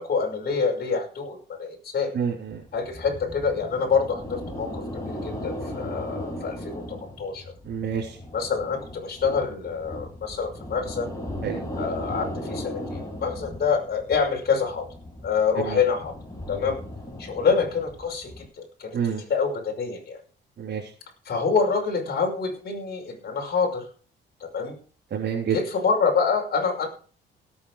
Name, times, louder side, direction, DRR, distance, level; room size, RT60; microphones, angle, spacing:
voice 1, 0.0-2.1 2.7-7.5 8.3-11.1 11.8-14.8 15.2-16.1 16.5-16.8 17.2-20.2 21.2-23.9 24.4-24.7 25.5-26.9, left 5 dB, 55° left, 1 dB, 6.0 m, -26 dB
voice 2, 2.1-2.6 7.7-8.2 11.4-11.6 15.6-15.8 18.9-19.2 20.6-20.8 25.1-25.6, right 7 dB, 60° right, -3 dB, 3.5 m, -28 dB
sound 1, 2.5-18.5, left 1 dB, 15° left, 5.9 m, -37 dB
17.0 x 8.6 x 4.9 m, 0.40 s
cardioid pair, 90°, 20 cm